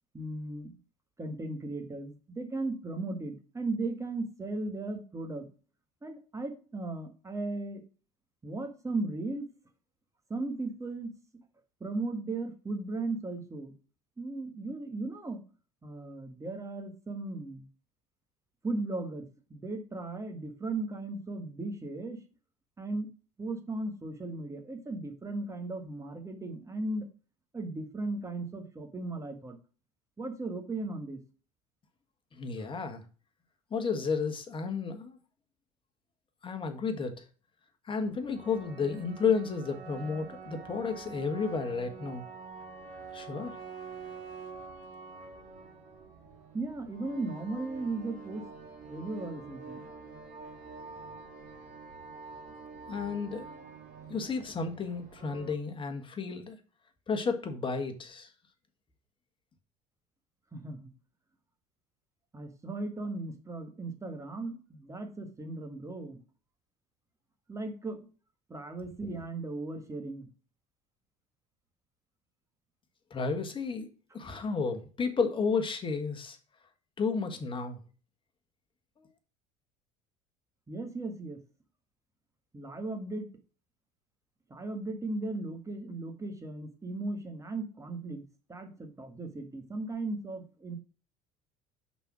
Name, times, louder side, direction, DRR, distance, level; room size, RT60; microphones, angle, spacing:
voice 1, 0.1-0.8 1.2-5.5 6.0-7.8 8.4-9.5 10.3-11.1 11.8-13.7 14.2-15.4 15.8-17.6 18.6-22.2 22.8-23.1 23.4-27.1 27.5-29.6 30.2-31.2 46.5-48.4 48.8-49.8 60.5-60.9 62.3-66.2 67.5-68.0 68.5-70.3 74.3-74.4 80.7-81.4 82.5-83.3 84.5-88.2 88.5-90.8, right 2 dB, 20° right, 1.6 m, -36 dB
voice 2, 32.3-33.0 33.7-35.2 36.4-37.2 37.8-42.2 43.1-43.5 52.9-53.6 54.1-56.6 57.1-58.3 73.1-73.9 74.1-76.4 77.0-77.8, left 5 dB, 30° left, 1.5 m, -32 dB
sound 1, 38.0-55.5, right 5 dB, 50° right, 2.3 m, -46 dB
5.5 x 4.2 x 6.1 m
hypercardioid pair, 75°, 17 cm